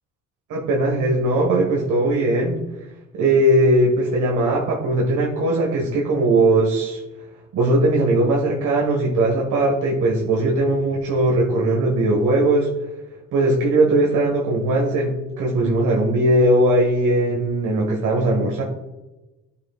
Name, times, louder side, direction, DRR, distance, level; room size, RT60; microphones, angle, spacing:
voice 1, 0.5-2.9 3.1-7.0 7.5-12.7 13.3-18.6, right 1 dB, 80° right, -1 dB, 1.6 m, -19 dB
11.0 x 6.8 x 2.4 m, 1.1 s
cardioid pair, 90°, 30 cm